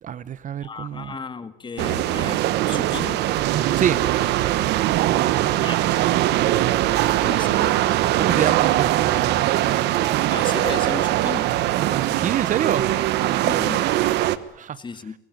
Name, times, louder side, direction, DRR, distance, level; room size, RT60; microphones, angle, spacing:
voice 1, 0.0-1.2 3.8-4.0 5.2-6.1 7.3-7.4 8.2-9.4 11.9-12.8 13.3-13.7 14.5-14.8, right 9 dB, 50° right, 1.0 m, -28 dB
voice 2, 0.6-3.2 5.6-6.1 7.2-8.0 8.3-8.6 10.3-11.5 13.4-13.8 14.8-15.1, left 5 dB, 30° left, 1.9 m, -35 dB
sound 1, 1.8-14.4, right 14 dB, 85° right, 1.2 m, -21 dB
23.0 x 21.5 x 9.4 m
cardioid pair, 110°, 17 cm